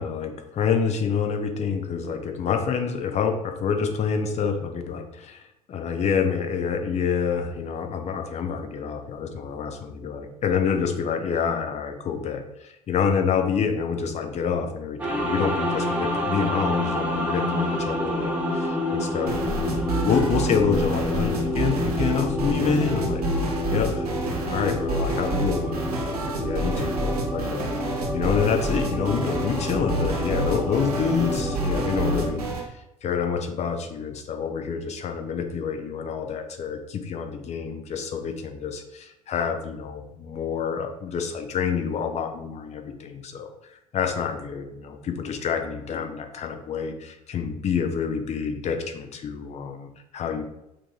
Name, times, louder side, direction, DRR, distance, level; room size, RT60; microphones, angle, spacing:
voice 1, 0.0-23.4 23.7-24.2 24.4-32.5 32.7-50.4, left 6 dB, 35° left, 6 dB, 0.7 m, -27 dB
sound 1, 15.0-32.3, left 1 dB, 10° right, 1.2 m, -28 dB
sound 2, 19.3-32.7, right 2 dB, 80° right, 0.8 m, -29 dB
6.1 x 2.7 x 3.1 m, 0.85 s
figure-of-eight pair, 65°, 19 cm